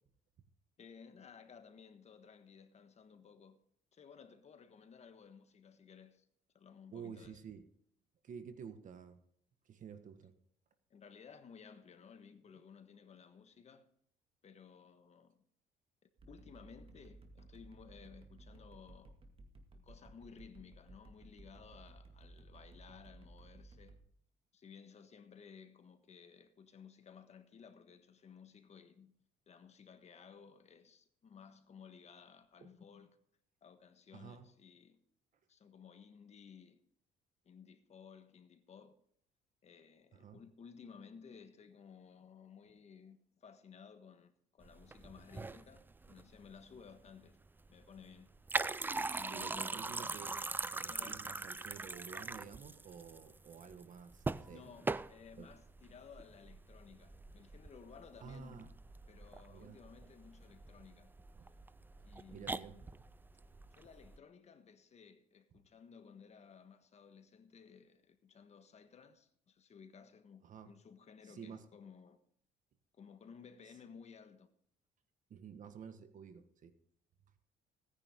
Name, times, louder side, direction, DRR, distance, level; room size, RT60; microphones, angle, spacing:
voice 1, 0.8-3.6 3.9-6.3 6.5-7.4 10.9-13.9 14.4-15.4 16.3-19.1 19.8-24.0 24.5-29.1 29.5-33.2 33.6-35.0 35.5-36.8 37.4-39.0 39.6-47.4 47.7-48.3 49.1-50.0 50.9-51.2 54.5-58.7 59.1-61.1 62.0-62.8 63.8-72.2 72.9-74.5, left 6 dB, 40° left, 1.4 m, -57 dB
voice 2, 6.9-7.6 8.2-9.2 9.6-10.3 32.6-32.7 34.1-34.5 40.1-40.4 49.3-50.3 50.7-54.6 55.4-55.5 58.2-58.7 59.5-59.8 62.3-62.9 70.4-70.7 71.2-71.7 75.3-76.7, right 7 dB, 50° right, 1.6 m, -51 dB
sound 1, 16.2-24.0, right 2 dB, 30° right, 2.2 m, -57 dB
Pouring water into glass, 44.6-64.2, right 3 dB, 10° right, 0.4 m, -42 dB
17.5 x 10.0 x 3.8 m
cardioid pair, 110°, 17 cm